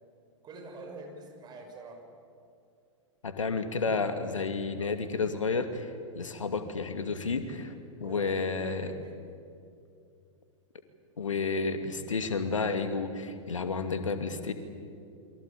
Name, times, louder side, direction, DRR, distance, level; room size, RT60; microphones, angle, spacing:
voice 1, 0.4-2.0 8.0-9.2, right 3 dB, 25° right, 3 dB, 6.3 m, -45 dB
voice 2, 3.2-7.7 8.0-8.9 11.2-14.5, left 4 dB, 75° left, 8 dB, 2.6 m, -31 dB
28.5 x 23.5 x 8.8 m, 2.5 s
figure-of-eight pair, 95°, 17 cm